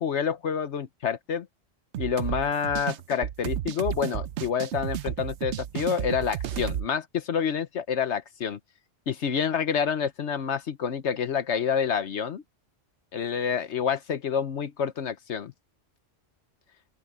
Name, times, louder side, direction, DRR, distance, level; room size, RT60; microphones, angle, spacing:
voice 1, 0.0-1.5 2.0-8.6 9.1-12.4 13.1-15.5, left 7 dB, 70° left, 1.2 m, -28 dB
sound 1, 1.9-6.9, right 11 dB, 70° right, 0.9 m, -32 dB
open air
omnidirectional pair, 1.3 m